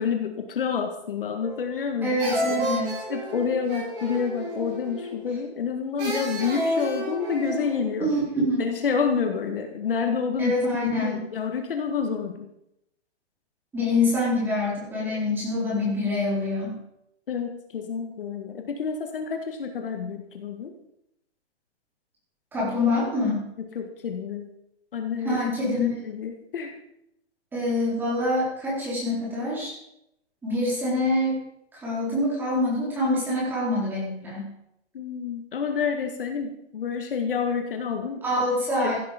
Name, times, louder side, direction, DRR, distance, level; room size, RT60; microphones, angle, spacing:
voice 1, 0.0-2.2 2.5-2.7 3.1-8.1 8.6-10.5 10.8-12.5 17.3-20.7 23.6-24.5 24.9-25.4 25.6-26.7 34.9-38.2 38.8-39.0, left 6 dB, 55° left, 5 dB, 1.8 m, -28 dB
sound 1, 1.4-1.9 2.2-5.3 6.0-7.8, equal, 25° right, 6.7 m, -31 dB
voice 2, 2.0-2.9 8.0-8.7 10.4-11.2 13.7-16.8 22.5-23.5 25.2-25.9 27.5-29.8 30.4-31.4 31.7-34.5 38.2-39.0, left 1 dB, 5° right, -6 dB, 4.0 m, -25 dB
15.5 x 10.5 x 5.2 m, 0.80 s
hypercardioid pair, 175°, 33 cm